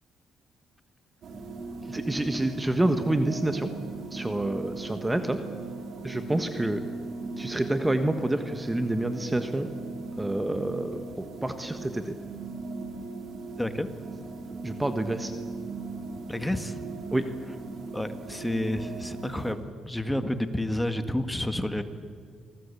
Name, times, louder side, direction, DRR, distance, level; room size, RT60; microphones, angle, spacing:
sound 1, 1.2-19.5, right 3 dB, 60° right, 4.2 m, -38 dB
voice 1, 1.9-3.7 4.1-5.4 6.0-6.8 7.4-9.7 10.2-12.2 14.6-15.3 17.1-17.3, right 1 dB, 10° right, 8 dB, 1.4 m, -28 dB
voice 2, 13.6-13.9 16.3-16.8 17.9-19.6 19.9-21.8, left 1 dB, 10° left, 9 dB, 1.9 m, -30 dB
26.5 x 19.0 x 8.5 m, 2.1 s
cardioid pair, 90°, 0 cm